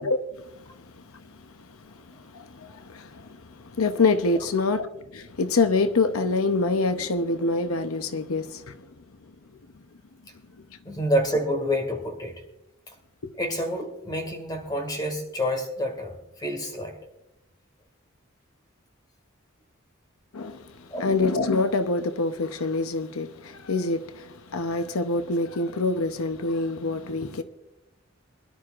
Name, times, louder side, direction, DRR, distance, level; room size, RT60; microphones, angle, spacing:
voice 1, 0.5-1.4 1.7-4.9 5.1-8.9 20.3-27.4, left 3 dB, 80° left, 0.8 m, -26 dB
voice 2, 10.9-12.3 13.4-16.9 20.9-21.0, equal, 20° left, 2.1 m, -28 dB
22.0 x 11.5 x 2.5 m
head